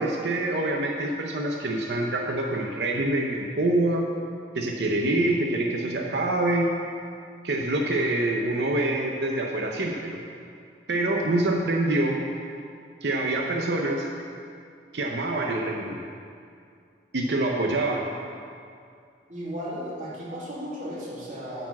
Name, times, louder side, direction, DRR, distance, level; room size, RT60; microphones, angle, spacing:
voice 1, 0.0-4.0 4.5-6.7 7.4-10.2 10.9-12.2 13.0-14.1 14.9-16.0 17.1-18.0, right 2 dB, 70° right, 0 dB, 0.8 m, -25 dB
voice 2, 19.3-21.7, equal, 45° right, -7 dB, 2.5 m, -35 dB
9.9 x 4.8 x 7.3 m, 2.4 s
head